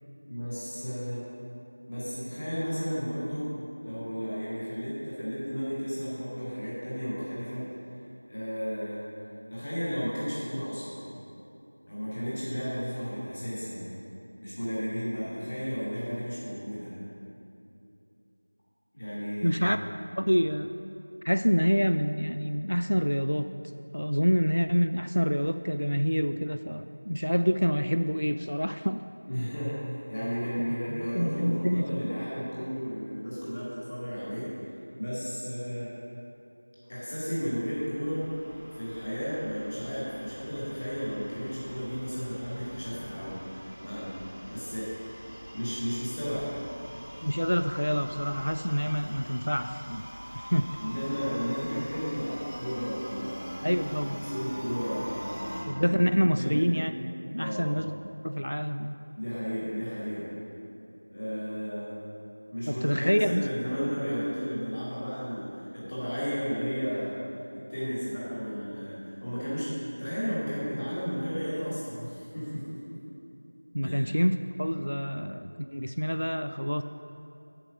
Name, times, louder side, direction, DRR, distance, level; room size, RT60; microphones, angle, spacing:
voice 1, 0.2-1.2 1.9-3.5 3.8-7.6 8.3-9.0 9.5-11.0 11.9-13.9 14.4-16.9 18.9-19.7 29.3-34.5 35.0-35.9 36.9-38.2 38.7-45.1 45.5-46.5 50.8-53.5 53.9-55.6 56.2-56.6 57.4-57.7 59.1-60.3 61.1-61.9 62.5-67.2 67.7-73.0 73.8-74.1, equal, 15° left, -9 dB, 1.5 m, -33 dB
voice 2, 19.4-19.8 20.2-20.7 21.2-23.5 23.9-29.0 30.9-32.0 47.2-50.1 50.3-50.8 53.6-54.2 55.7-56.9 57.3-57.9 58.2-59.0 62.7-63.5 73.7-76.8, equal, 80° left, 9 dB, 0.3 m, -27 dB
sound 1, 36.9-55.6, equal, 5° right, 1.0 m, -43 dB
8.0 x 7.5 x 4.9 m, 2.8 s
figure-of-eight pair, 175°, 0 cm